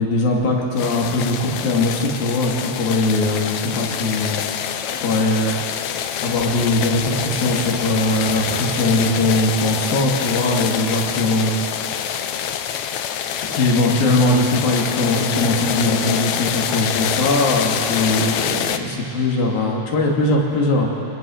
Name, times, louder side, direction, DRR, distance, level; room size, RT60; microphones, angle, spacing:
voice 1, 0.0-4.4 5.0-5.6 6.2-12.3 13.5-20.9, left 2 dB, 90° left, -1 dB, 4.4 m, -20 dB
sound 1, 0.8-18.8, left 9 dB, 75° left, 1.8 m, -26 dB
27.5 x 20.0 x 6.5 m, 2.9 s
omnidirectional pair, 4.0 m